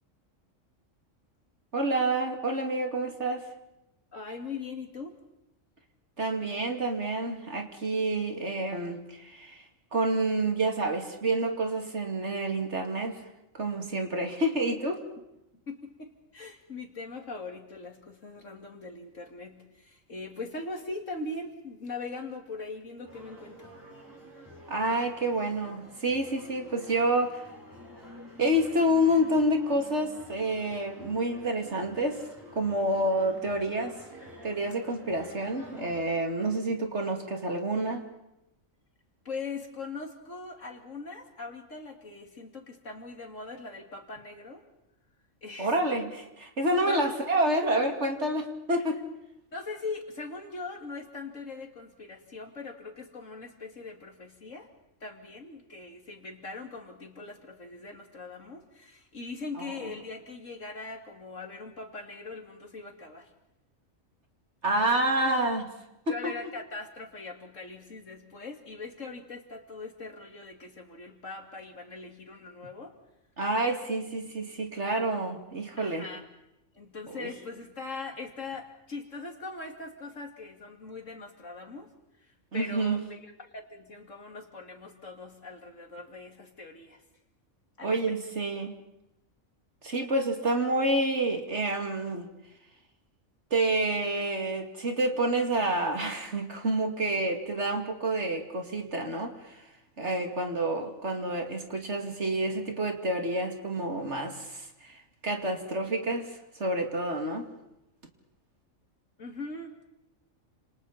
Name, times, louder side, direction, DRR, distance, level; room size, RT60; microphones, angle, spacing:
voice 1, 1.7-3.4 6.2-9.6 9.9-13.2 13.5-15.0 24.7-27.4 28.4-32.3 32.5-33.9 34.4-38.0 45.6-46.1 46.4-49.0 59.6-59.7 64.6-65.7 66.1-66.3 73.4-76.1 77.1-77.3 82.5-83.0 87.8-88.7 89.8-92.3 93.5-99.7 100.0-106.3 106.6-107.5, right 1 dB, 55° right, 3 dB, 2.9 m, -28 dB
voice 2, 4.1-5.1 15.7-23.8 39.2-44.6 45.4-46.0 46.9-47.1 47.6-47.7 49.5-54.7 55.0-63.3 64.7-64.9 66.1-73.0 75.8-76.2 76.7-81.9 82.2-87.0 87.8-88.0 109.2-109.9, left 3 dB, 65° left, 3 dB, 2.9 m, -41 dB
sound 1, 23.0-36.2, equal, 15° right, 7.3 m, -49 dB
30.0 x 28.0 x 4.3 m, 0.88 s
omnidirectional pair, 1.4 m